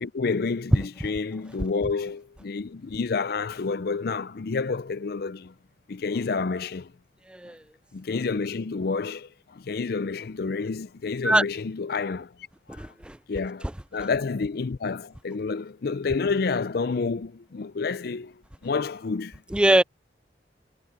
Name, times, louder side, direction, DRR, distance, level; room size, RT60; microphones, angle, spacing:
voice 1, 0.0-5.5 5.9-6.9 7.9-12.3 12.7-12.8 13.3-18.3 18.6-19.3 19.7-19.8, left 4 dB, 60° left, 0.5 m, -29 dB
voice 2, 12.7-13.2 19.5-19.8, right 1 dB, 5° right, 0.4 m, -21 dB
head